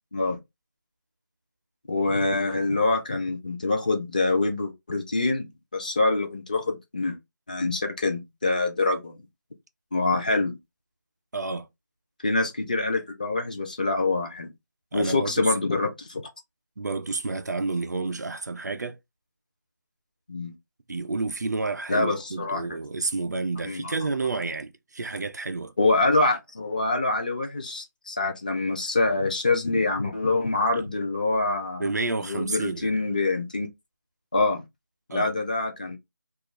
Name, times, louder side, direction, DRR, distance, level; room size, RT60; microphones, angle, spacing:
voice 1, 1.9-5.5 5.7-7.2 7.5-9.2 9.9-10.6 12.2-14.5 14.9-16.2 20.3-20.5 21.9-22.6 23.6-23.9 25.8-31.9 32.2-33.7 34.3-34.6 35.1-36.0, left 3 dB, 25° left, 0.4 m, -25 dB
voice 2, 11.3-11.7 14.9-15.5 16.8-19.0 20.9-25.7 31.8-33.0 35.1-35.3, right 3 dB, 65° right, 0.4 m, -30 dB
2.4 x 2.2 x 3.0 m
figure-of-eight pair, 165°, 10 cm